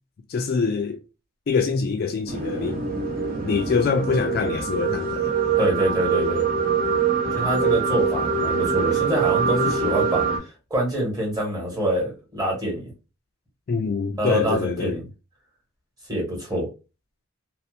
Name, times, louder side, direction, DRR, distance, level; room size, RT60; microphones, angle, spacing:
voice 1, 0.3-1.0 1.5-2.9 3.4-5.3 13.7-15.0, left 5 dB, 50° left, 0.3 m, -24 dB
sound 1, 2.3-10.4, right 5 dB, 50° right, 0.9 m, -24 dB
voice 2, 5.6-6.5 7.3-10.3 10.7-12.9 14.2-15.0 16.1-16.7, right 1 dB, 20° right, 1.3 m, -25 dB
2.6 x 2.0 x 2.3 m
head